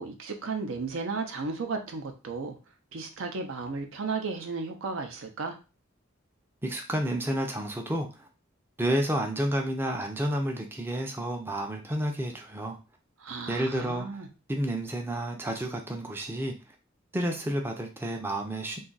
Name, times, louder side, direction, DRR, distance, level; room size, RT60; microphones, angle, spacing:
voice 1, 0.0-2.6 2.9-5.5 13.2-14.3, right 4 dB, 80° right, 5 dB, 0.6 m, -34 dB
voice 2, 6.6-8.3 8.8-12.8 13.5-14.2 14.5-16.7 17.1-18.8, right 1 dB, 10° right, 2 dB, 0.4 m, -30 dB
2.6 x 2.4 x 3.8 m, 0.31 s
head